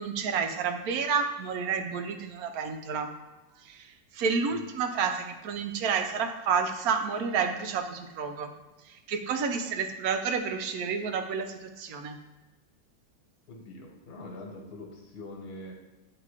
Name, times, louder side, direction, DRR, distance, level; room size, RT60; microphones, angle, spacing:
voice 1, 0.0-3.1 3.6-8.5 9.1-12.2, right 6 dB, 70° right, 6 dB, 1.0 m, -30 dB
voice 2, 13.5-15.7, left 2 dB, 70° left, 1 dB, 1.6 m, -44 dB
8.6 x 2.9 x 4.8 m, 1.1 s
omnidirectional pair, 1.7 m